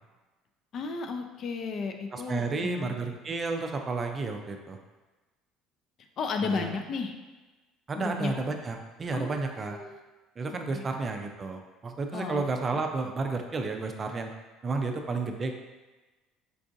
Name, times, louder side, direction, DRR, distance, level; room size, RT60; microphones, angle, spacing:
voice 1, 0.7-2.8 6.2-7.2 8.0-8.3 9.1-10.0 10.7-10.8 12.1-12.4, left 4 dB, 50° left, 5 dB, 0.4 m, -33 dB
voice 2, 2.1-4.8 6.4-6.7 7.9-9.8 10.4-14.3 14.6-15.5, right 3 dB, 30° right, 4 dB, 0.4 m, -32 dB
4.6 x 2.4 x 2.6 m, 1.2 s
supercardioid pair, 100°, 0 cm